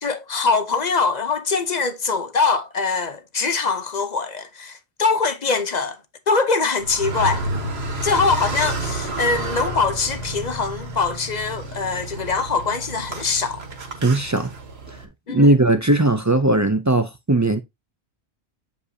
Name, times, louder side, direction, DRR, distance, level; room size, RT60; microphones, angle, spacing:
voice 1, 0.0-6.0 6.3-7.4 8.0-13.6 15.3-15.6, left 4 dB, 45° left, 0.8 m, -23 dB
Car, 6.8-15.1, right 1 dB, 70° right, 1.6 m, -30 dB
voice 2, 14.0-14.5 14.9-15.0 15.3-17.6, right 2 dB, 25° right, 0.4 m, -18 dB
8.1 x 5.2 x 2.7 m
omnidirectional pair, 1.1 m